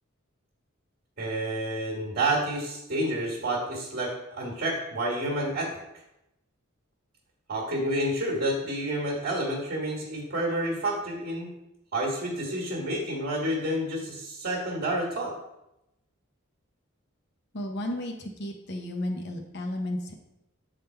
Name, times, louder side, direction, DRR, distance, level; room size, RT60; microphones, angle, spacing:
voice 1, 1.2-5.8 7.5-11.5 11.9-15.3, right 1 dB, 50° right, -2 dB, 1.5 m, -29 dB
voice 2, 17.5-20.1, left 1 dB, 50° left, 3 dB, 0.7 m, -33 dB
7.3 x 3.7 x 4.4 m, 0.89 s
head